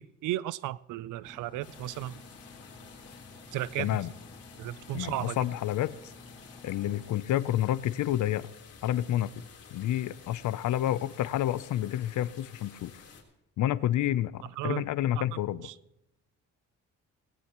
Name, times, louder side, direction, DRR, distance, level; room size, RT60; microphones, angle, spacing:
voice 1, 0.0-2.2 3.5-4.0 4.6-5.4 14.6-14.8 15.3-15.7, right 15 dB, 85° right, 20 dB, 0.5 m, -35 dB
Engine, 1.2-7.2, left 3 dB, 15° left, 1.9 m, -52 dB
sound 1, 1.6-13.2, left 5 dB, 55° left, 3.7 m, -52 dB
voice 2, 3.8-4.1 4.9-6.1 6.6-8.5 8.8-9.3 9.7-12.9 13.6-15.7, left 12 dB, 75° left, 17 dB, 0.6 m, -29 dB
19.0 x 18.0 x 3.0 m, 0.84 s
cardioid pair, 90°, 30 cm